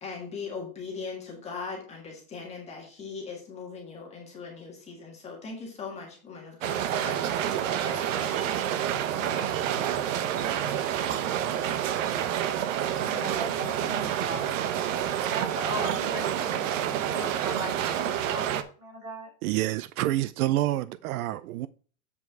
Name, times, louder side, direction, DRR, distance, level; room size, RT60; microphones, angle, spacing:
voice 1, 0.0-8.5 9.2-9.7, left 4 dB, 15° left, 1.6 m, -40 dB
sound 1, 6.6-18.6, right 10 dB, 65° right, 0.9 m, -28 dB
voice 2, 13.0-14.7 15.3-18.5 18.8-19.3, right 1 dB, 30° right, 3.9 m, -38 dB
voice 3, 19.4-21.7, right 15 dB, 80° right, 0.5 m, -27 dB
8.3 x 4.8 x 4.6 m
supercardioid pair, 170°, 42 cm